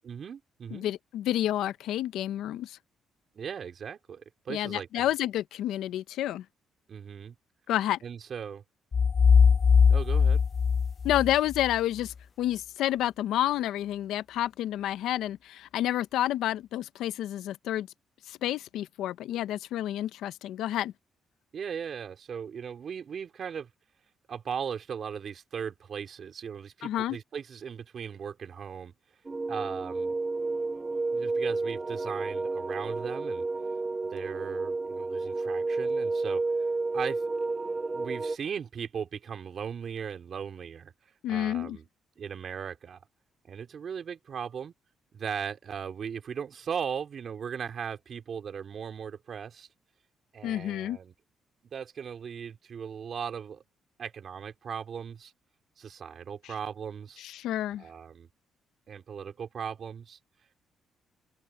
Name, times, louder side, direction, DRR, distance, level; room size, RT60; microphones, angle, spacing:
voice 1, 0.0-0.9 3.3-5.1 6.9-7.4 8.0-8.6 9.9-10.4 21.5-23.7 24.3-28.9 29.5-30.2 31.1-33.5 34.1-36.7 36.9-37.2 37.9-40.9 41.3-41.9 42.2-43.0 43.4-44.7 45.1-49.7 50.3-51.1 51.7-53.6 54.0-55.3 55.8-57.2 57.8-58.3 58.9-60.2, right 7 dB, 55° right, 4.1 m, -38 dB
voice 2, 0.7-2.8 4.5-6.4 7.7-8.0 11.0-17.9 18.3-20.9 26.8-27.2 41.2-41.8 50.4-51.0 57.2-57.8, left 13 dB, 85° left, 0.7 m, -29 dB
sound 1, 8.9-11.7, left 6 dB, 40° left, 0.3 m, -21 dB
sound 2, 29.3-38.4, right 3 dB, 25° right, 0.9 m, -31 dB
cardioid pair, 90°, 0 cm